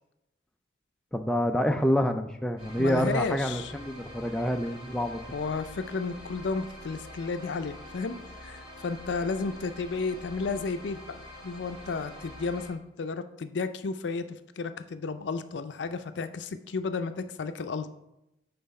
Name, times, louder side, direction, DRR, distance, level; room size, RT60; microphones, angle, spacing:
voice 1, 1.1-5.3, equal, 5° left, 5 dB, 0.3 m, -27 dB
sound 1, 2.6-12.7, left 1 dB, 35° right, 2.4 m, -46 dB
voice 2, 2.8-3.7 5.3-8.2 8.4-11.0 11.4-17.9, left 4 dB, 85° left, 10 dB, 0.4 m, -33 dB
5.7 x 4.0 x 5.2 m, 0.87 s
head